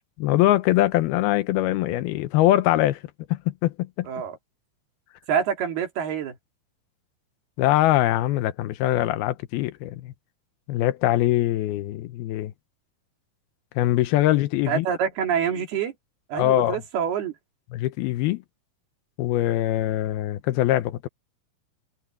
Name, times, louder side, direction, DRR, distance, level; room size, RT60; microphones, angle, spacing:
voice 1, 0.2-3.0 3.3-4.1 7.6-10.1 10.7-12.5 13.8-14.9 16.4-16.8 17.7-18.4 19.2-21.1, left 14 dB, 80° left, 2.7 m, -22 dB
voice 2, 4.0-4.4 5.3-6.4 14.7-15.9 16.3-17.3, right 8 dB, 80° right, 4.8 m, -26 dB
omnidirectional pair, 4.5 m